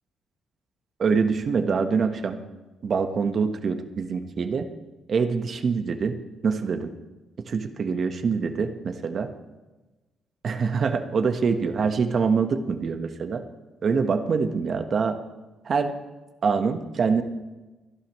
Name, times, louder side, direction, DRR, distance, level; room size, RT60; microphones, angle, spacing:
voice 1, 1.0-2.4 2.8-4.7 5.1-6.1 6.4-6.9 7.5-9.3 10.4-13.4 13.8-15.2 15.6-15.9 16.4-17.2, right 5 dB, 45° right, 7 dB, 1.3 m, -24 dB
26.5 x 11.5 x 3.2 m, 1.1 s
cardioid pair, 110°, 0 cm